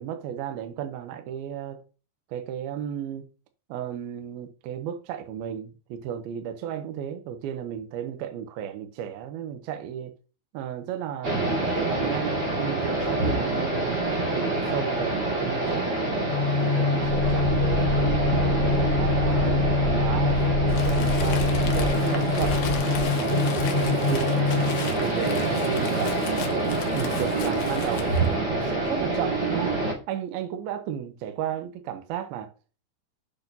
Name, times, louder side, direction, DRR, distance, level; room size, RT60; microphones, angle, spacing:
voice 1, 0.0-1.8 2.3-3.3 3.7-10.1 10.5-14.0 14.3-16.2 16.6-19.6 19.8-20.4 20.8-22.6 23.1-24.7 25.0-26.5 26.9-29.7 30.1-32.5, right 9 dB, 75° right, 2.4 m, -34 dB
sound 1, 11.2-29.9, right 2 dB, 30° right, 2.2 m, -27 dB
sound 2, 16.2-24.8, left 3 dB, 25° left, 4.4 m, -24 dB
Crumpling crinkling, 20.7-28.3, left 8 dB, 75° left, 1.9 m, -38 dB
7.9 x 6.5 x 2.8 m
omnidirectional pair, 4.8 m